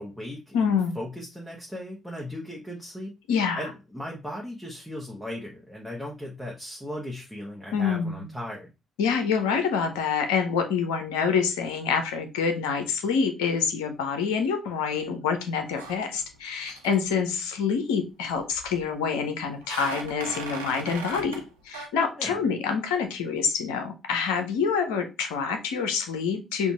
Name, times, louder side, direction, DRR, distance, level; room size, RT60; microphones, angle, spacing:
voice 1, 0.0-3.2 3.6-8.7 22.1-22.4, left 1 dB, 5° left, -3 dB, 1.1 m, -37 dB
voice 2, 0.5-1.0 3.3-3.7 7.7-8.3 9.0-26.7, left 6 dB, 75° left, 6 dB, 0.6 m, -26 dB
sound 1, 15.8-16.4 16.6-17.0 18.3-18.9 19.6-21.5 21.7-21.9, right 4 dB, 85° right, 0.5 m, -38 dB
5.3 x 2.4 x 2.3 m, 0.27 s
figure-of-eight pair, 40°, 0 cm